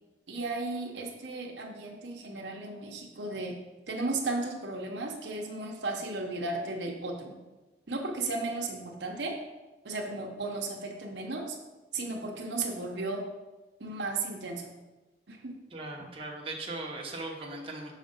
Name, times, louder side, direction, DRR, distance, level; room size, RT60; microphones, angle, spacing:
voice 1, 0.3-3.6 3.9-7.3 7.9-9.4 9.8-11.6 11.9-13.2 13.8-14.7 15.3-15.6, right 2 dB, 70° right, 1 dB, 0.9 m, -35 dB
voice 2, 15.7-17.9, right 2 dB, 30° right, -1 dB, 0.9 m, -38 dB
6.6 x 4.1 x 5.5 m, 1.1 s
head